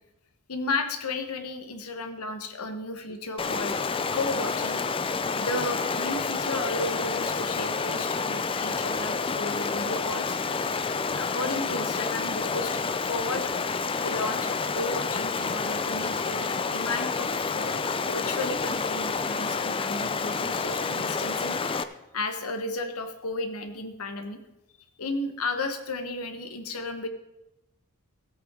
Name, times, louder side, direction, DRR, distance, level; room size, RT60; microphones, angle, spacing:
voice 1, 0.5-3.8 4.1-4.8 5.4-10.4 11.2-13.6 14.0-21.6 22.1-24.4 25.0-27.1, left 2 dB, 85° left, 7 dB, 1.3 m, -33 dB
Stream, 3.4-21.8, left 4 dB, 25° left, 0.4 m, -29 dB
16.0 x 8.4 x 3.7 m, 0.93 s
head